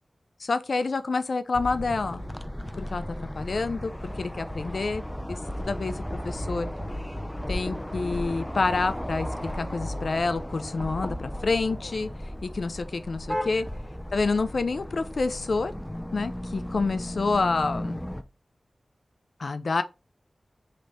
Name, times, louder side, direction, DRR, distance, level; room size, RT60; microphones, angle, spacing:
voice 1, 0.4-2.2 2.8-5.0 5.3-6.7 7.5-9.3 9.5-12.1 12.4-13.7 14.1-15.7 16.1-18.0 19.4-19.8, left 3 dB, 75° left, 0.5 m, -28 dB
sound 1, 1.5-18.2, equal, 5° left, 0.4 m, -35 dB
3.3 x 3.1 x 4.0 m
wide cardioid pair, 55°, 0 cm